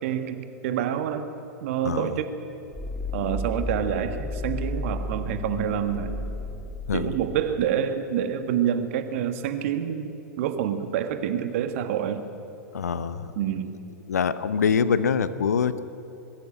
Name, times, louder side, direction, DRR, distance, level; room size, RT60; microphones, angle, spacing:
voice 1, 0.0-1.3 1.6-2.3 3.1-6.1 6.9-12.2 13.3-13.7, right 9 dB, 50° right, 9 dB, 1.6 m, -27 dB
voice 2, 1.8-2.2 6.9-7.1 12.7-13.3 14.1-15.8, left 6 dB, 70° left, 14 dB, 0.9 m, -24 dB
sound 1, 2.7-7.6, left 2 dB, 5° left, 2.1 m, -33 dB
22.0 x 13.5 x 9.0 m, 2.9 s
figure-of-eight pair, 95°, 9 cm